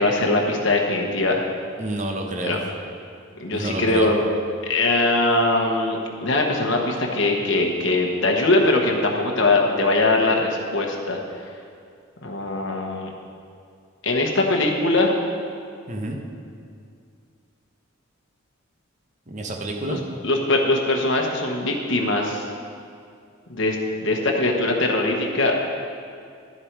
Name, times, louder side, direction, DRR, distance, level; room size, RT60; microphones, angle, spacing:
voice 1, 0.0-1.4 2.4-2.6 3.4-4.2 4.6-11.2 12.2-13.1 14.0-15.2 19.8-22.5 23.5-25.6, left 2 dB, 60° left, 1 dB, 1.2 m, -21 dB
voice 2, 1.8-2.6 3.5-4.1 15.9-16.2 19.3-20.0, right 1 dB, 35° right, 2 dB, 1.0 m, -29 dB
11.5 x 7.2 x 4.7 m, 2.3 s
head